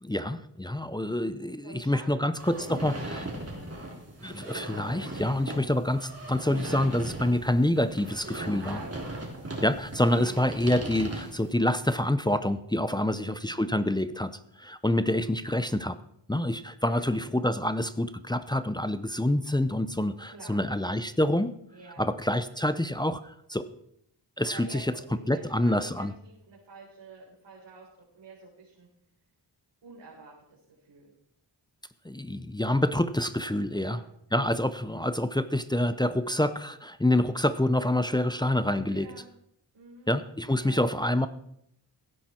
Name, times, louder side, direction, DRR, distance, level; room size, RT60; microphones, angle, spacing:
voice 1, 0.0-3.2 4.2-8.8 9.6-14.3 14.6-16.0 16.3-21.5 22.0-23.7 24.4-24.9 25.3-26.1 32.0-34.0 34.3-39.1 40.1-41.3, left 1 dB, 10° left, 12 dB, 0.6 m, -27 dB
voice 2, 1.0-3.4 8.6-9.2 12.9-13.7 16.8-17.2 20.3-20.6 21.7-22.1 24.4-24.8 25.1-28.9 29.8-31.1 33.7-34.1 38.9-39.3 39.7-40.2 40.6-40.8, right 3 dB, 85° right, -7 dB, 4.2 m, -49 dB
sound 1, 2.4-11.5, right 1 dB, 35° right, 3.3 m, -38 dB
16.5 x 10.5 x 4.4 m, 0.75 s
wide cardioid pair, 70°, 43 cm